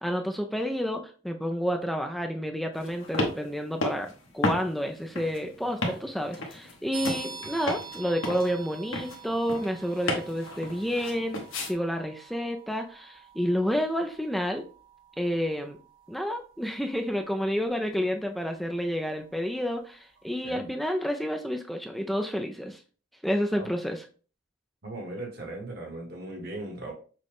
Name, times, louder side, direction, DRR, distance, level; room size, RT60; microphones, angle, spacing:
voice 1, 0.0-14.7 15.2-15.8 16.1-22.8 23.2-24.1, equal, ahead, 0.3 m, -30 dB
sound 1, 2.7-11.7, left 1 dB, 85° left, 1.1 m, -34 dB
sound 2, 6.9-19.4, right 5 dB, 70° right, 1.1 m, -47 dB
voice 2, 24.8-26.9, right 2 dB, 50° right, 1.2 m, -38 dB
6.2 x 2.2 x 3.4 m
head